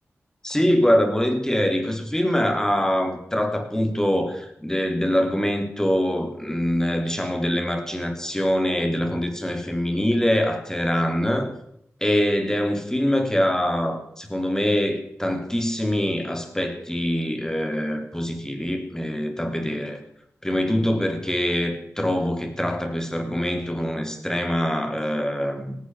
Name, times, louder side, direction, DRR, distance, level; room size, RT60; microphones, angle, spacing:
voice 1, 0.4-11.5 12.0-20.0 20.4-25.7, equal, 10° left, 5 dB, 3.3 m, -24 dB
18.0 x 15.5 x 4.8 m, 0.73 s
cardioid pair, 50°, 5 cm